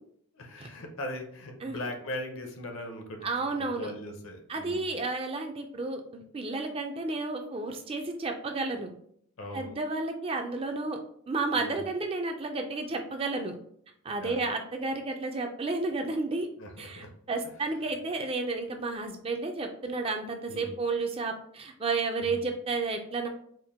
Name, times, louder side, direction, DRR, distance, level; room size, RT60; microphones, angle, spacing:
voice 1, 0.3-4.9 9.4-9.8 11.5-11.8 14.2-14.4 16.6-17.1 20.5-20.7 22.2-22.5, left 1 dB, 65° left, 4 dB, 0.7 m, -40 dB
voice 2, 3.2-3.9 4.5-8.9 9.5-11.0 11.3-13.5 14.0-16.5 16.8-23.3, right 3 dB, 25° right, 4 dB, 0.3 m, -32 dB
4.4 x 2.1 x 3.5 m, 0.65 s
head